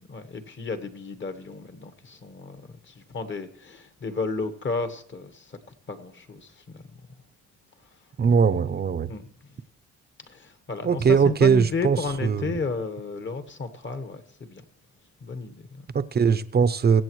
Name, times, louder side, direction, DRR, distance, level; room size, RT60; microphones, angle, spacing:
voice 1, 0.1-5.6 5.9-6.8 9.1-9.3 10.3-14.6 15.2-15.9, left 3 dB, 40° left, 1.4 m, -33 dB
voice 2, 8.2-9.1 10.8-12.6 15.9-17.0, right 6 dB, 35° right, 0.7 m, -21 dB
22.5 x 7.8 x 3.1 m
cardioid pair, 90°, 30 cm